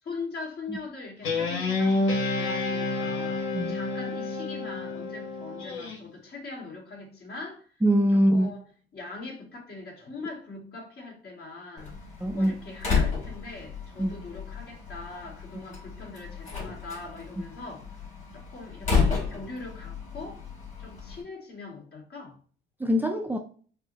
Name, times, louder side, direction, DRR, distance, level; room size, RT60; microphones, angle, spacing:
voice 1, 0.0-7.7 8.1-8.6 8.9-11.9 12.3-17.9 18.3-20.4 20.8-22.4, left 3 dB, 55° left, 1.9 m, -41 dB
Guitar, 1.2-6.0, left 3 dB, 85° left, 1.1 m, -29 dB
voice 2, 7.8-8.6 12.2-12.6 14.0-14.1 22.8-23.4, equal, 10° right, 0.5 m, -23 dB
Slam, 11.8-21.2, left 5 dB, 35° left, 2.1 m, -32 dB
4.5 x 2.1 x 3.9 m
cardioid pair, 90°, 20 cm